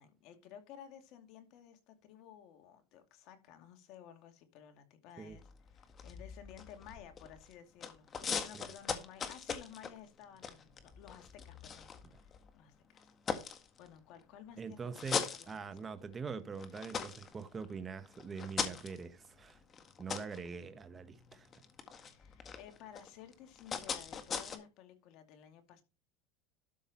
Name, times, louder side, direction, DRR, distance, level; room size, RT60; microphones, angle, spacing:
voice 1, 0.0-15.7 22.1-25.8, left 9 dB, 55° left, 2.4 m, -55 dB
sound 1, 5.3-7.5 7.8-12.5 13.0-14.2 14.7-16.1 16.5-24.6, left 6 dB, 30° left, 1.7 m, -41 dB
voice 2, 14.6-19.6 20.0-21.5, right 5 dB, 20° right, 1.0 m, -44 dB
12.5 x 5.7 x 4.3 m
supercardioid pair, 120°, 0 cm